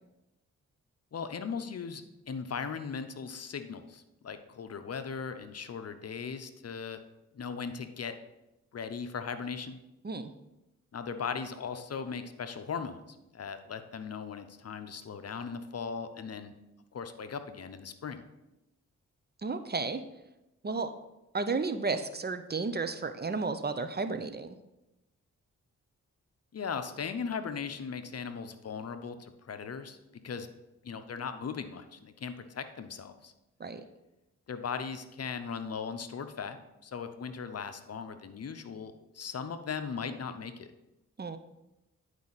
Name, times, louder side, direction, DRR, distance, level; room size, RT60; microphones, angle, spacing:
voice 1, 1.1-7.0 7.3-8.1 8.7-9.8 10.9-16.5 16.9-18.2 26.5-30.0 30.2-30.5 30.8-33.3 34.5-40.7, left 6 dB, 50° left, 9 dB, 0.7 m, -38 dB
voice 2, 19.4-20.0 20.6-20.9 21.3-24.6 33.6-33.8 41.2-41.4, right 4 dB, 30° right, 10 dB, 0.6 m, -33 dB
10.5 x 4.9 x 4.1 m, 0.95 s
cardioid pair, 60°, 31 cm